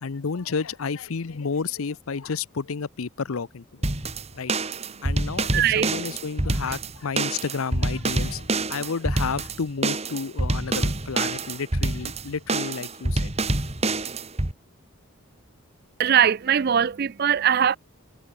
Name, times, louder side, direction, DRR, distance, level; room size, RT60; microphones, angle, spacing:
voice 1, 0.0-3.8 4.3-4.7 5.0-13.3, left 5 dB, 80° left, 0.7 m, -31 dB
sound 1, 3.8-14.5, right 2 dB, 30° right, 1.9 m, -26 dB
voice 2, 4.9-5.9 16.0-17.8, right 9 dB, 45° right, 0.4 m, -22 dB
head